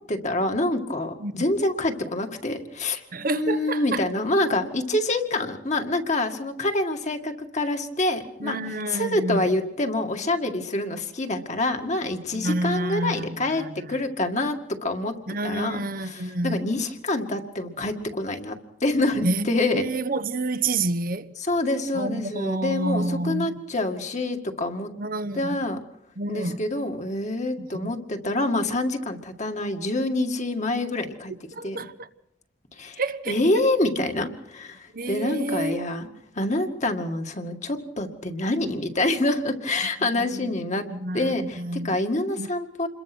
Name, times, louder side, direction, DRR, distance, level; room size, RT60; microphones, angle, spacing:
voice 1, 0.1-3.0 3.3-8.6 8.9-15.2 15.4-19.9 21.4-24.9 25.3-25.8 26.3-31.3 31.6-31.9 32.8-33.0 33.3-36.1 36.3-40.9 41.1-42.9, left 2 dB, 40° left, 2.1 m, -26 dB
voice 2, 3.1-4.0 8.4-9.5 12.3-13.7 15.3-16.6 19.2-21.3 21.9-23.6 25.0-25.6 26.2-26.7 27.6-27.9 31.5-32.1 33.0-33.6 34.9-35.9 40.0-40.5 40.9-42.1 42.4-42.5, right 2 dB, 45° right, 1.0 m, -29 dB
28.0 x 22.0 x 6.2 m
head